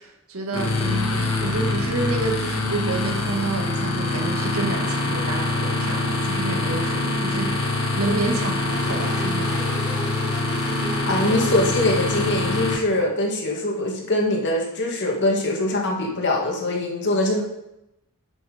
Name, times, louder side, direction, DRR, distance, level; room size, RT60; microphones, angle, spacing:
voice 1, 0.0-9.8, right 2 dB, 75° right, 2 dB, 1.8 m, -29 dB
sound 1, 0.5-12.8, left 2 dB, 80° left, 1.6 m, -24 dB
sound 2, 8.7-12.3, equal, 5° right, 1.1 m, -36 dB
voice 2, 11.0-17.4, left 1 dB, 55° left, 0 dB, 2.1 m, -23 dB
7.8 x 7.4 x 5.1 m, 0.87 s
head